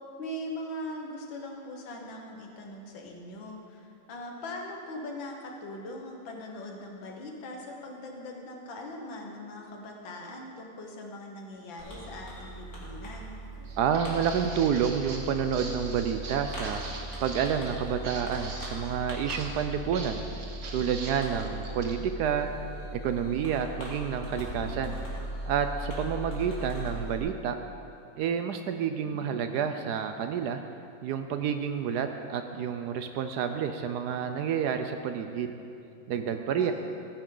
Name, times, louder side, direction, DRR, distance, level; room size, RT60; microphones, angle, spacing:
voice 1, 0.2-13.3 29.0-29.6 36.6-36.7, left 1 dB, 75° left, 1 dB, 2.0 m, -41 dB
Fireworks, 11.8-27.2, right 1 dB, 40° left, 2.4 m, -39 dB
Walk footsteps, 13.6-22.0, right 3 dB, 45° right, 1.2 m, -43 dB
voice 2, 13.8-20.2 20.7-22.5 22.9-24.9 25.5-27.6 28.2-30.6 31.0-35.5 36.1-36.7, right 7 dB, 75° right, 7 dB, 0.9 m, -29 dB
13.5 x 9.8 x 3.9 m, 2.6 s
omnidirectional pair, 2.1 m